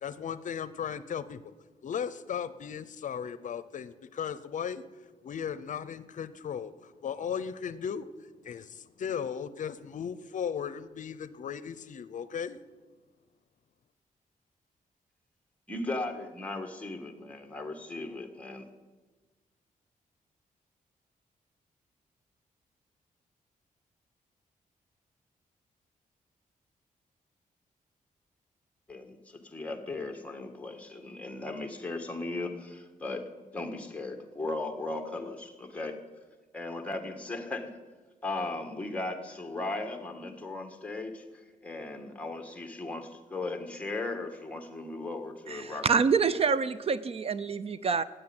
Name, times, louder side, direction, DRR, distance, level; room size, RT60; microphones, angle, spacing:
voice 1, 0.0-1.4 1.8-4.8 5.2-8.1 8.4-12.6, left 7 dB, 65° left, 15 dB, 0.7 m, -36 dB
voice 2, 15.7-18.7 28.9-33.2 33.5-36.0 36.5-37.7 38.2-45.9, left 2 dB, 10° left, 4 dB, 1.8 m, -37 dB
voice 3, 45.5-48.0, right 5 dB, 45° right, 15 dB, 0.5 m, -27 dB
16.0 x 9.3 x 9.7 m, 1.3 s
wide cardioid pair, 130°, 14 cm